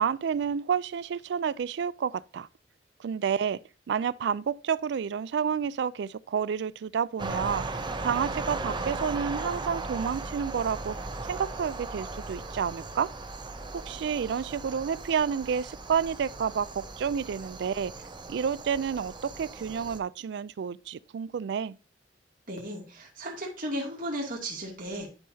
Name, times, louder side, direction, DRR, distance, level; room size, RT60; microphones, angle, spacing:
voice 1, 0.0-2.5 3.0-3.6 3.9-7.6 8.0-11.0 11.3-13.1 13.9-17.9 18.3-21.8, right 7 dB, 70° right, 0.3 m, -30 dB
sound 1, 7.2-20.0, right 3 dB, 25° right, 0.7 m, -37 dB
voice 2, 22.5-25.1, equal, 50° right, 2.2 m, -35 dB
10.5 x 5.5 x 2.7 m
head